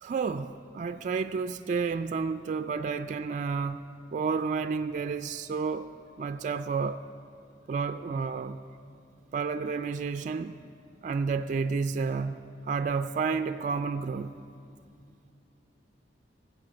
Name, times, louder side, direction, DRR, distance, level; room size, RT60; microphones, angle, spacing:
voice 1, 0.0-3.8 4.1-5.9 6.2-7.0 7.7-8.6 9.3-10.6 11.0-12.4 12.6-14.3, right 5 dB, 45° right, 9 dB, 0.3 m, -30 dB
14.0 x 7.6 x 7.6 m, 2.5 s
head